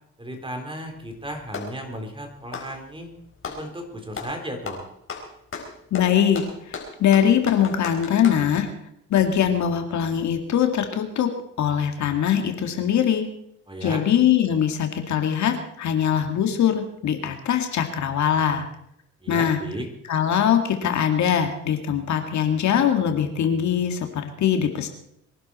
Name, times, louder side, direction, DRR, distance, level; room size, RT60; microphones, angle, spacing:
voice 1, 0.2-3.1 3.4-4.8 13.7-14.0 19.2-19.9, equal, 15° right, 4 dB, 4.1 m, -35 dB
Clapping, 0.9-1.8 2.4-3.7 4.1-4.4 4.7-8.5, left 4 dB, 45° left, 4.4 m, -35 dB
voice 2, 5.9-6.4 7.0-8.7 9.1-11.3 11.6-13.3 13.8-18.7 19.3-19.6 20.1-24.9, left 9 dB, 70° left, 5 dB, 2.2 m, -22 dB
24.0 x 11.5 x 4.3 m, 0.75 s
cardioid pair, 90°, 30 cm